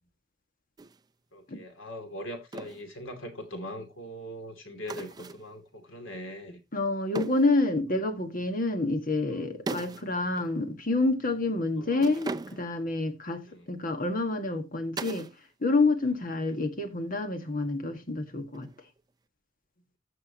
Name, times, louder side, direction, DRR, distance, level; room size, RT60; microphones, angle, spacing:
sound 1, 0.8-1.0 2.5-2.9 4.9-5.5 7.2-7.6 9.7-10.1 10.4-10.5 12.0-12.8 15.0-15.4 15.7-16.2 18.5-19.0, right 3 dB, 20° right, 0.4 m, -38 dB
voice 1, 1.3-6.6 9.3-9.4 11.8-12.1 13.5-13.6, equal, 90° left, 2.7 m, -41 dB
voice 2, 6.7-15.3 15.6-18.7, left 2 dB, 45° left, 1.7 m, -28 dB
15.0 x 6.2 x 2.9 m
head